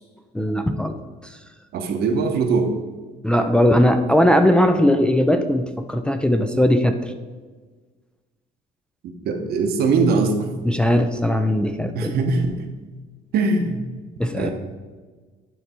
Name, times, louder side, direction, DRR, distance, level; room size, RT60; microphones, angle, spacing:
voice 1, 0.3-1.3 3.2-7.1 10.7-12.1 14.2-14.5, equal, 5° left, 6 dB, 0.4 m, -19 dB
voice 2, 1.7-2.7 9.3-10.5 11.9-12.6 13.3-13.8 14.3-14.5, right 4 dB, 65° right, 5 dB, 0.9 m, -21 dB
9.4 x 3.3 x 4.3 m, 1.4 s
cardioid pair, 110°, 17 cm